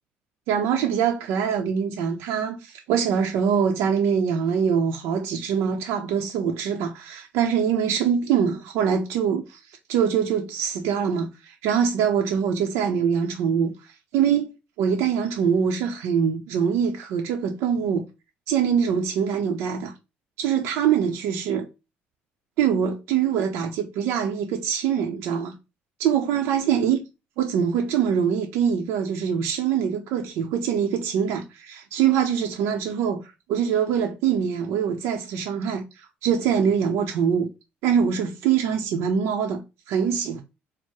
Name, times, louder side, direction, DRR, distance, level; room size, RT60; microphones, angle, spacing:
voice 1, 0.5-9.6 9.9-13.8 14.1-18.0 18.5-19.9 20.4-21.7 22.6-25.5 26.0-27.1 27.4-33.2 33.5-35.8 36.2-37.5 37.8-39.6 39.9-40.4, right 7 dB, 80° right, 0.7 m, -23 dB
4.6 x 2.1 x 4.4 m
cardioid pair, 120°, 4 cm